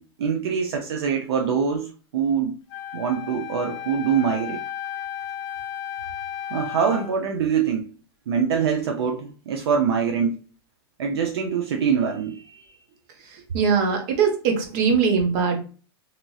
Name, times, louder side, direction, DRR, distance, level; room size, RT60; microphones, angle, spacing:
voice 1, 0.0-2.5 2.9-4.6 6.5-7.9 8.3-10.4 11.0-12.7, right 7 dB, 75° right, 0.5 m, -24 dB
Wind instrument woodwind instrument, 2.7-7.1, left 10 dB, 50° left, 0.5 m, -34 dB
voice 2, 13.3-15.6, right 6 dB, 50° right, 1.0 m, -21 dB
2.8 x 2.7 x 2.3 m
hypercardioid pair, 120°, 13 cm